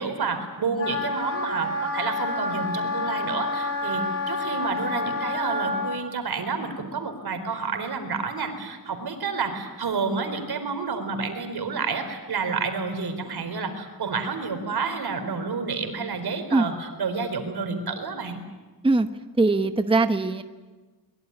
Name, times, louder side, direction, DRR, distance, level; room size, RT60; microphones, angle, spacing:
voice 1, 0.0-18.4, right 4 dB, 80° right, 7 dB, 4.3 m, -29 dB
Wind instrument woodwind instrument, 0.8-6.0, left 2 dB, 40° left, 5.2 m, -28 dB
voice 2, 19.4-20.4, right 3 dB, 15° right, 8 dB, 0.9 m, -21 dB
23.5 x 22.0 x 9.8 m, 1.3 s
wide cardioid pair, 140°, 37 cm